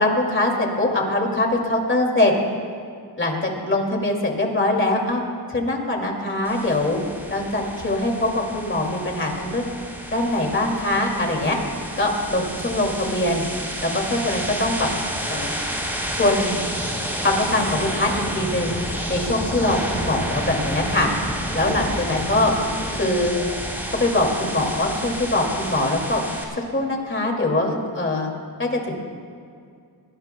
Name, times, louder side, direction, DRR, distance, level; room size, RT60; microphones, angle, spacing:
voice 1, 0.0-2.3 3.2-5.2 5.5-7.0 7.3-9.7 10.1-11.6 12.0-13.5 13.8-14.9 15.3-15.6 16.1-16.6 17.2-18.8 19.1-21.1 21.5-22.5 22.9-23.3 23.9-26.2 26.5-28.3 28.6-28.9, left 2 dB, 30° left, 1 dB, 2.5 m, -22 dB
sound 1, 6.4-26.4, equal, 5° right, 3.4 m, -30 dB
22.0 x 17.5 x 2.3 m, 2.2 s
wide cardioid pair, 100°, 42 cm